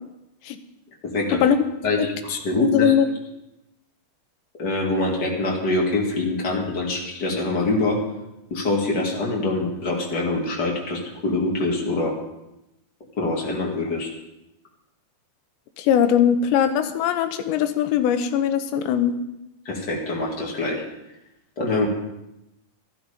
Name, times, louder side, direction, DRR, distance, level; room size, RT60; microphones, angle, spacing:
voice 1, 1.0-1.4 1.8-2.9 4.6-8.0 8.5-12.2 13.2-14.1 19.6-20.8 21.6-21.9, left 2 dB, 40° left, -1 dB, 1.5 m, -24 dB
voice 2, 2.6-3.1 15.8-19.1, left 9 dB, 80° left, 9 dB, 2.9 m, -20 dB
13.0 x 13.0 x 5.2 m, 0.90 s
omnidirectional pair, 5.3 m